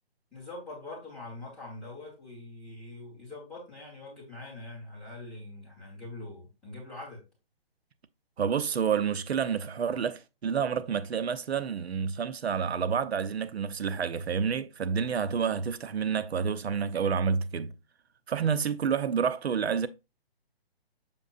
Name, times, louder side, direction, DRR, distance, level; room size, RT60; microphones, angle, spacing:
voice 1, 0.3-7.2, left 2 dB, ahead, 1.4 m, -43 dB
voice 2, 8.4-17.7 18.3-19.9, right 7 dB, 80° right, 0.8 m, -29 dB
6.9 x 5.7 x 2.5 m
hypercardioid pair, 175°, 31 cm